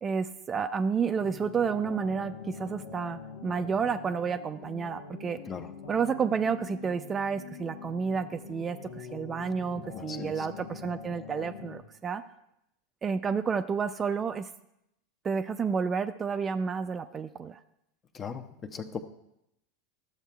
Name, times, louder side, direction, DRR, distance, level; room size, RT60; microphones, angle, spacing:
voice 1, 0.0-5.4 5.9-12.2 13.0-14.5 15.2-17.6, right 6 dB, 25° right, 10 dB, 0.4 m, -30 dB
sound 1, 1.2-11.8, left 5 dB, 80° left, 1.0 m, -44 dB
voice 2, 9.9-10.5 18.1-19.0, left 6 dB, 30° left, 9 dB, 0.7 m, -38 dB
13.0 x 7.2 x 2.3 m, 0.81 s
hypercardioid pair, 90°, 0 cm